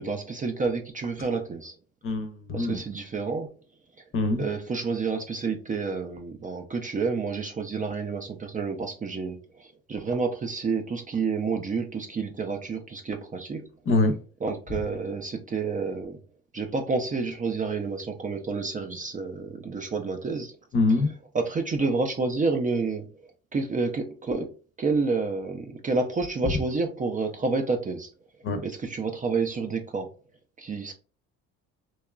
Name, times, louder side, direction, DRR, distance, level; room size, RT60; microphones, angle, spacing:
voice 1, 0.0-1.7 2.5-3.5 4.4-13.7 14.4-16.2 16.5-20.5 21.3-23.1 23.5-24.5 24.8-28.1 28.6-30.1 30.6-30.9, right 4 dB, 25° right, 0.4 m, -29 dB
voice 2, 2.0-2.8 4.1-4.4 13.9-14.2 20.7-21.1 28.4-28.6, left 2 dB, 40° left, 0.7 m, -24 dB
2.9 x 2.3 x 2.2 m
supercardioid pair, 85°, 32 cm